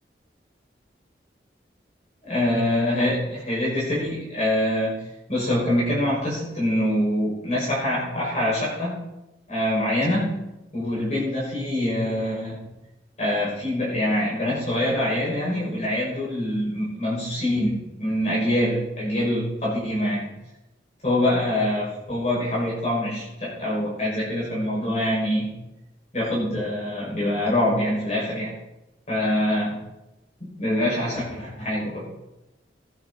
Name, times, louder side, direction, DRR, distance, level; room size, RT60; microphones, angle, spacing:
voice 1, 2.2-4.9 5.3-8.9 9.5-10.4 10.7-12.6 13.2-20.3 21.0-25.5 26.1-28.5 29.1-29.8 30.4-32.1, left 1 dB, 35° left, -7 dB, 6.1 m, -24 dB
16.5 x 10.5 x 4.3 m, 0.94 s
head